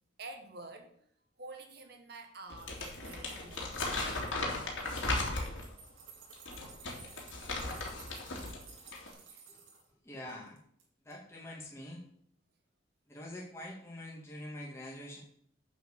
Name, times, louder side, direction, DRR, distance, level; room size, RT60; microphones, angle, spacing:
voice 1, 0.2-1.0 1.4-4.4 5.1-5.3 9.0-9.5, right 2 dB, 55° right, 5 dB, 1.7 m, -49 dB
sound 1, 2.2-4.4 4.7-9.9 10.3-10.8 11.1-11.2, right 5 dB, 90° right, 2.9 m, -55 dB
Crumpling crinkling, 2.5-5.7 6.3-8.6 8.9-9.1, left 2 dB, 80° left, 3.1 m, -36 dB
voice 2, 10.0-10.6 11.0-12.0 13.1-15.2, left 1 dB, 15° left, -3 dB, 2.0 m, -45 dB
8.2 x 7.7 x 6.7 m, 0.66 s
head